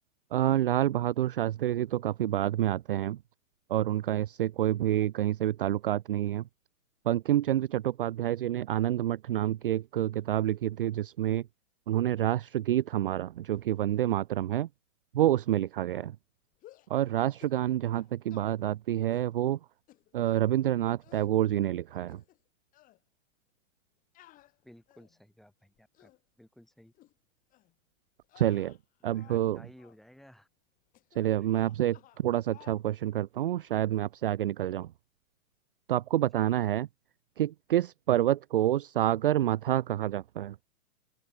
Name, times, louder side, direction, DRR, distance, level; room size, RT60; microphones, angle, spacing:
voice 1, 0.3-3.2 3.7-6.4 7.1-11.4 11.9-14.7 15.1-16.1 16.9-19.6 20.1-22.2 28.4-28.8 29.0-29.6 31.2-34.9 35.9-36.9 37.4-40.5, right 12 dB, 40° right, 0.5 m, -28 dB
sound 1, 16.5-17.0 17.4-17.6 17.9-18.5 19.1-19.3 19.9-20.5 21.0-21.4 21.9-22.5 22.7-23.0 24.1-25.2 25.8-26.2 26.9-27.1 27.5-27.7 28.2-29.5 29.8-30.0 30.9-31.2 31.5-32.2 32.5-32.8, left 15 dB, 20° left, 4.0 m, -57 dB
voice 2, 24.6-26.1 26.4-26.9 29.0-30.5 31.4-31.5, equal, ahead, 3.4 m, -56 dB
open air
hypercardioid pair, 165°, 42 cm